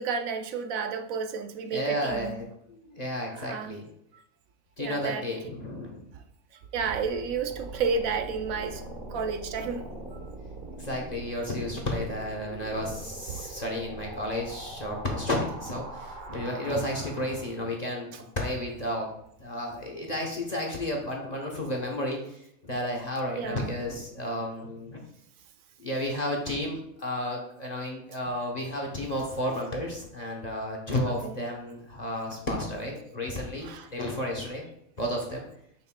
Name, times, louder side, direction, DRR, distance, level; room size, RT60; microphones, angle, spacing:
voice 1, 0.0-2.3 3.3-3.8 4.8-5.3 6.7-8.8 9.1-9.8 13.3-13.4 23.4-23.7 31.2-31.3 33.6-33.9, right 5 dB, 75° right, 7 dB, 1.0 m, -31 dB
voice 2, 1.7-3.8 4.8-6.0 10.8-19.1 19.4-25.0 25.8-34.6 35.0-35.4, left 1 dB, 35° left, 0 dB, 0.9 m, -32 dB
sound 1, 6.8-17.7, right 2 dB, 40° right, 1.0 m, -42 dB
7.2 x 6.1 x 2.2 m, 0.74 s
omnidirectional pair, 1.5 m